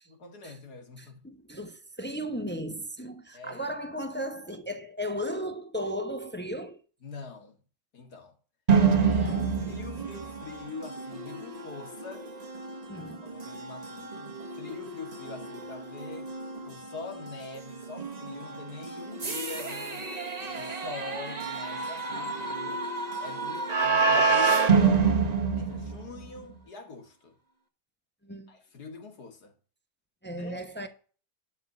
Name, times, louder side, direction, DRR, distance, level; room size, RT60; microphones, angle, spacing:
voice 1, 0.0-1.2 3.3-3.8 7.0-7.6 7.9-8.4 9.0-12.3 13.2-16.3 16.6-20.1 20.4-22.8 23.2-25.1 25.6-27.4 28.5-29.5 30.3-30.9, left 4 dB, 75° left, 2.6 m, -44 dB
voice 2, 1.0-6.8 9.2-9.6 12.9-13.2 20.6-20.7 22.1-22.3 28.2-28.5 30.2-30.9, equal, 10° left, 0.7 m, -36 dB
sound 1, 8.7-26.4, right 5 dB, 30° right, 1.1 m, -28 dB
12.0 x 4.7 x 6.5 m
omnidirectional pair, 1.7 m